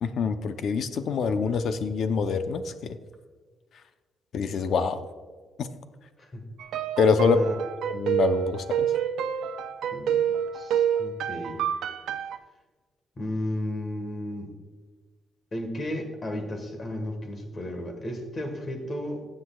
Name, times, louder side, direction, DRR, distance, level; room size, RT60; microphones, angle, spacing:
voice 1, 0.0-3.0 4.3-5.0 5.6-5.7 7.0-7.4 7.9-8.9, left 5 dB, 55° left, 9 dB, 0.6 m, -25 dB
sound 1, 6.6-12.4, right 9 dB, 80° right, 0.5 m, -28 dB
voice 2, 7.2-7.6 9.9-10.2 10.5-11.6 13.2-14.5 15.5-19.2, left 1 dB, 25° left, 5 dB, 1.4 m, -33 dB
16.0 x 7.7 x 2.3 m, 1.4 s
cardioid pair, 160°, 0 cm